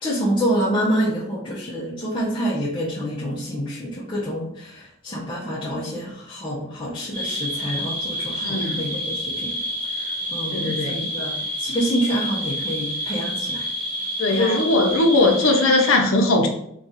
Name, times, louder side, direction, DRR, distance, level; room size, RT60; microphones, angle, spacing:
voice 1, 0.0-9.6 10.0-13.7 14.3-14.7, equal, 25° left, -7 dB, 0.5 m, -27 dB
sound 1, 7.1-16.0, equal, 35° right, 1.1 m, -29 dB
voice 2, 8.4-8.8 10.5-11.0 14.2-16.5, left 2 dB, 85° left, 2 dB, 0.6 m, -19 dB
2.5 x 2.3 x 4.0 m, 0.73 s
head